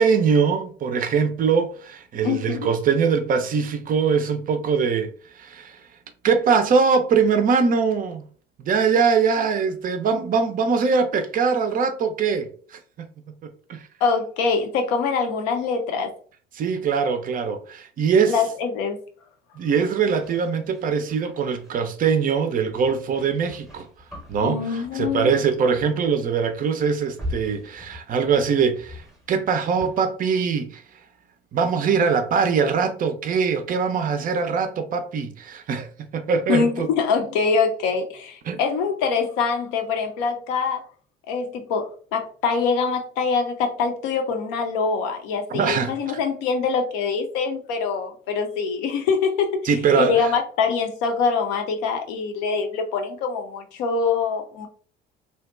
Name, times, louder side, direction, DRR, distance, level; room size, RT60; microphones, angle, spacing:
voice 1, 0.0-5.1 5.4-5.8 6.2-8.2 8.6-13.1 13.7-13.8 16.5-18.4 19.6-23.9 24.3-30.8 31.5-36.9 38.5-38.6 45.5-46.2 49.6-50.2, right 6 dB, 30° right, 0.4 m, -22 dB
voice 2, 2.2-2.6 14.0-16.1 18.3-19.0 24.4-25.4 36.5-40.8 41.3-49.7 50.0-54.7, left 5 dB, 60° left, 0.6 m, -24 dB
sound 1, 20.0-21.8 22.7-25.4 25.7-26.1 26.4-30.0, left 1 dB, ahead, 0.8 m, -41 dB
2.7 x 2.1 x 2.3 m
figure-of-eight pair, 60°, 30 cm